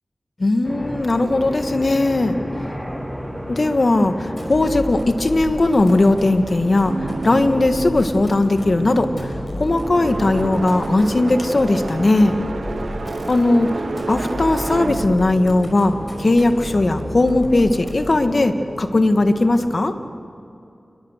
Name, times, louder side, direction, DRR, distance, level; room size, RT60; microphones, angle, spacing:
voice 1, 0.4-2.4 3.5-6.9 7.2-12.4 13.3-13.8 14.1-19.9, left 2 dB, 55° left, 7 dB, 1.7 m, -18 dB
sound 1, 0.6-19.8, equal, 5° left, 6.1 m, -32 dB
sound 2, 4.3-18.3, left 1 dB, 40° left, 5.4 m, -35 dB
sound 3, 6.9-16.8, right 3 dB, 75° right, 1.2 m, -31 dB
28.5 x 22.5 x 6.6 m, 2.6 s
wide cardioid pair, 50°, 0 cm